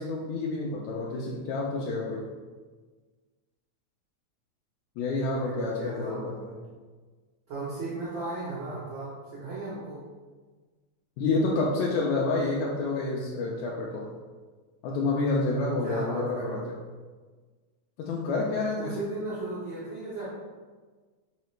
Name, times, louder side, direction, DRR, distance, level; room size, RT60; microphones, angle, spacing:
voice 1, 0.0-2.3 5.0-6.4 11.2-14.1 14.8-16.7 18.0-19.0, left 3 dB, 80° left, -3 dB, 1.8 m, -29 dB
voice 2, 5.3-6.6 7.5-10.0 15.8-16.7 18.8-20.3, right 2 dB, 80° right, -8 dB, 1.0 m, -36 dB
4.8 x 3.2 x 3.1 m, 1.4 s
omnidirectional pair, 3.6 m